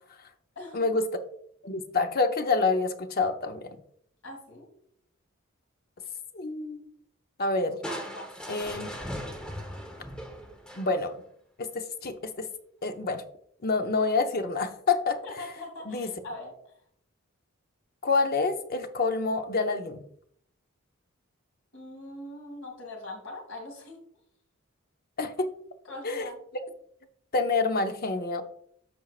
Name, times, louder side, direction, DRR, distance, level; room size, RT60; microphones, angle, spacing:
voice 1, 0.6-0.9 4.2-4.7 7.8-8.3 15.2-16.7 21.7-24.0 25.8-26.4, left 1 dB, 70° left, 0 dB, 2.4 m, -42 dB
voice 2, 1.6-3.7 6.3-6.8 7.4-7.8 8.5-8.9 10.7-11.2 11.6-12.5 12.8-13.2 13.6-15.2 15.9-16.1 18.0-20.0 25.2-25.5 26.0-26.2 27.3-28.4, left 3 dB, 45° left, 7 dB, 0.7 m, -27 dB
Crushing, 7.8-11.2, equal, 5° left, 1.0 m, -38 dB
13.5 x 4.5 x 2.4 m, 0.67 s
head